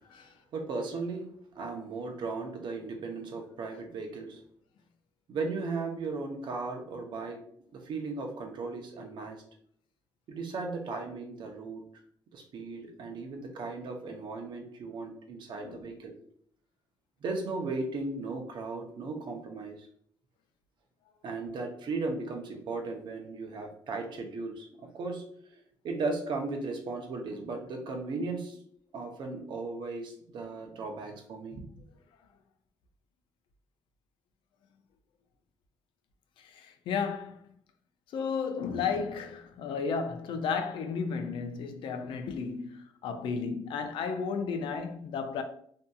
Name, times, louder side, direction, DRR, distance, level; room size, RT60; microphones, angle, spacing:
voice 1, 0.5-4.4 5.3-7.4 7.7-9.4 10.3-11.8 12.3-16.1 17.2-19.9 21.2-25.2 25.8-28.6 28.9-31.6, right 3 dB, 65° right, 0.6 m, -36 dB
voice 2, 15.6-15.9 36.4-37.4 38.1-45.4, left 5 dB, 85° left, 0.4 m, -33 dB
2.6 x 2.5 x 2.3 m
cardioid pair, 90°, 8 cm